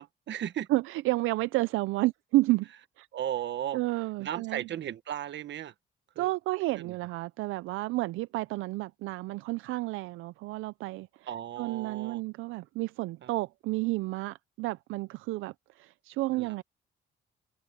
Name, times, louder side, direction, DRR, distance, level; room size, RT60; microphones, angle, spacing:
voice 1, 0.0-0.7 3.1-3.8 4.2-5.7 6.1-6.3 6.7-6.9 11.3-12.2 13.2-13.3 16.3-16.5, right 10 dB, 65° right, 1.4 m, -36 dB
voice 2, 0.7-2.7 3.0-3.1 3.7-4.7 6.2-16.6, right 19 dB, 90° right, 0.4 m, -31 dB
cardioid pair, 90°, 20 cm